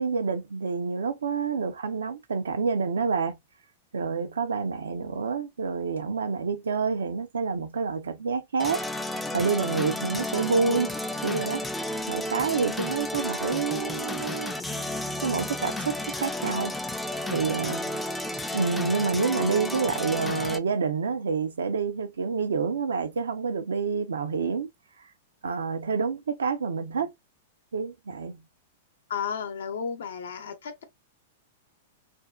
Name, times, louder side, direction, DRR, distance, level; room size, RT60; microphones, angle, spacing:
voice 1, 0.0-3.4 3.9-8.8 9.1-10.9 11.2-11.6 12.1-14.5 15.2-16.7 17.3-18.0 18.5-24.7 25.4-27.1 27.7-28.4, right 5 dB, 85° right, 0.5 m, -28 dB
sound 1, 8.6-20.6, left 1 dB, 5° left, 0.3 m, -32 dB
voice 2, 29.1-30.8, left 7 dB, 75° left, 0.7 m, -33 dB
2.6 x 2.2 x 2.2 m
hypercardioid pair, 110°, 0 cm